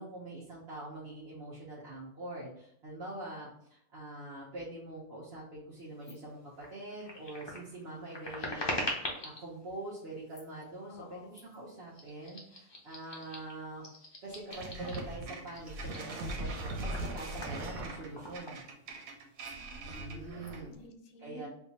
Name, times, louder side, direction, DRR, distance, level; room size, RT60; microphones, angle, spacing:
voice 1, 0.0-13.9 14.2-18.6 19.9-20.7 21.2-21.5, right 2 dB, 55° right, -7 dB, 1.0 m, -44 dB
sound 1, 6.0-6.1 6.6-9.4 10.2-10.6 11.3-11.6 11.9-15.1 15.5-19.1 19.4-19.6 19.9-20.5, left 1 dB, 30° left, 0.5 m, -42 dB
voice 2, 10.9-11.5 19.5-21.5, left 2 dB, 70° left, 6 dB, 0.9 m, -52 dB
sound 2, 14.5-20.8, right 2 dB, 85° right, 1.2 m, -40 dB
3.5 x 2.3 x 4.0 m, 0.71 s
omnidirectional pair, 1.4 m